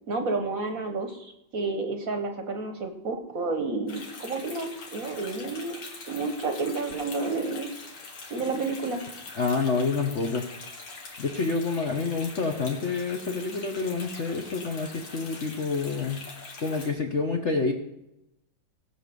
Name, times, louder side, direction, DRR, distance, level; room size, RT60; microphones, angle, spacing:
voice 1, 0.1-5.8 6.1-7.7 8.3-9.0, right 3 dB, 50° right, 6 dB, 1.2 m, -30 dB
sound 1, 3.9-16.9, left 3 dB, 85° left, 2.9 m, -43 dB
voice 2, 9.4-10.5 11.2-16.2 16.6-17.7, left 4 dB, 45° left, 3 dB, 0.9 m, -28 dB
17.5 x 6.1 x 6.8 m, 0.88 s
omnidirectional pair, 2.3 m